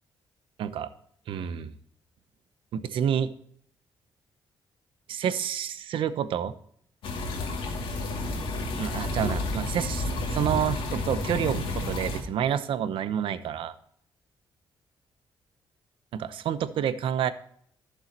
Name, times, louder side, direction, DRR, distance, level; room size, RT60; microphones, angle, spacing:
voice 1, 0.6-0.9 1.3-1.7 2.7-3.3 5.1-6.5 8.8-13.7 16.1-17.3, right 9 dB, 80° right, 12 dB, 0.8 m, -29 dB
sound 1, 7.0-12.2, left 2 dB, 85° left, 2.5 m, -30 dB
16.0 x 7.1 x 2.9 m, 0.64 s
cardioid pair, 130°, 9 cm